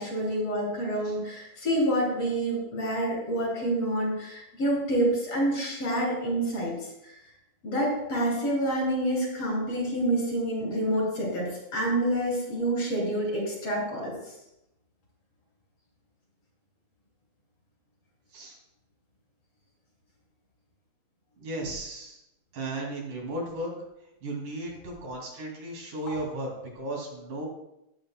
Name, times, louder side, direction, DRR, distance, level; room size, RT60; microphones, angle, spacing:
voice 1, 0.0-6.7 7.0-7.2 7.6-14.1, right 1 dB, 50° left, -4 dB, 4.4 m, -27 dB
voice 2, 21.4-22.2 22.5-23.7 24.2-27.5, right 1 dB, 80° right, -2 dB, 4.0 m, -35 dB
18.0 x 7.9 x 2.2 m, 0.86 s
omnidirectional pair, 3.5 m